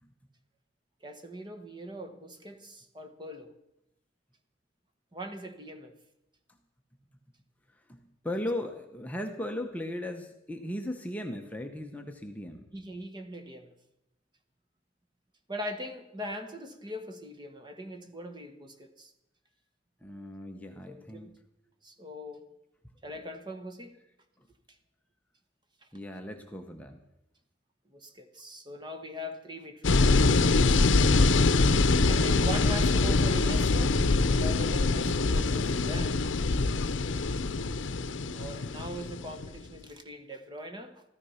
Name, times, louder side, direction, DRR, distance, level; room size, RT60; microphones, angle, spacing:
voice 1, 1.0-3.5 5.1-5.9 12.7-13.7 15.5-19.1 20.9-21.4 21.8-22.4 23.0-23.9 25.8-25.9 27.9-30.4 32.0-34.0 34.3-36.2 38.3-41.0, equal, 25° right, 7 dB, 1.2 m, -41 dB
voice 2, 8.2-12.7 20.0-21.4 25.9-27.0, left 1 dB, 10° left, 3 dB, 0.8 m, -37 dB
sound 1, 29.8-39.6, left 3 dB, 75° left, 0.7 m, -24 dB
14.5 x 13.5 x 5.7 m, 0.86 s
head